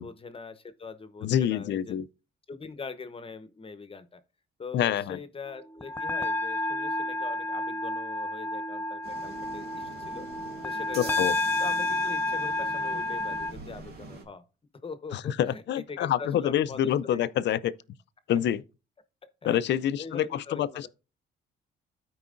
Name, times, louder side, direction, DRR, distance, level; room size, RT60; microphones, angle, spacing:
voice 1, 0.0-2.0 2.5-4.2 4.6-10.3 10.6-11.3 11.6-14.5 14.8-17.2 19.4-19.6 20.0-20.9, left 4 dB, 30° left, 0.9 m, -42 dB
voice 2, 1.2-2.0 4.7-5.2 11.0-11.3 15.1-17.7 18.3-18.6 19.4-20.9, left 11 dB, 65° left, 0.5 m, -27 dB
sound 1, 5.7-13.5, left 2 dB, 10° left, 0.5 m, -30 dB
sound 2, 9.0-14.2, right 3 dB, 55° right, 2.0 m, -44 dB
13.0 x 4.7 x 2.5 m
cardioid pair, 90°, 20 cm